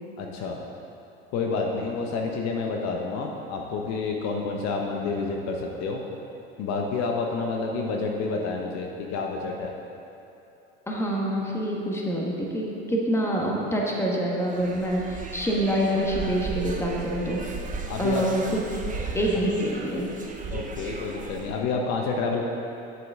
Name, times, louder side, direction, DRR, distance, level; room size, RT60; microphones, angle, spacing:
voice 1, 0.2-0.6 1.3-6.0 6.6-9.7 17.9-18.2 20.5-22.4, left 4 dB, 60° left, 1 dB, 0.9 m, -29 dB
voice 2, 10.9-17.4 18.0-18.6 19.1-20.1, right 1 dB, 10° left, -2 dB, 1.5 m, -26 dB
sound 1, 14.4-21.6, right 3 dB, 25° right, 0.9 m, -36 dB
8.0 x 7.9 x 3.6 m, 2.8 s
hypercardioid pair, 80°, 30 cm